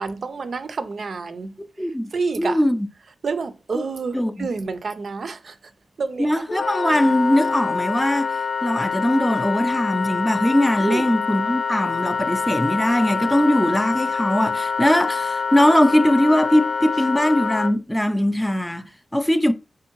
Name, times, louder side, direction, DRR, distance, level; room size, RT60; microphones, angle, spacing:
voice 1, 0.0-1.5 2.1-2.6 3.2-5.5 6.0-6.4 10.8-11.1, right 4 dB, 65° right, 0.4 m, -28 dB
voice 2, 1.8-2.1 2.4-2.9 3.7-3.8 4.1-4.5 6.2-19.5, equal, 10° left, 0.4 m, -20 dB
Wind instrument woodwind instrument, 6.5-17.7, left 5 dB, 80° left, 0.3 m, -25 dB
3.5 x 3.4 x 3.0 m
cardioid pair, 70°, 0 cm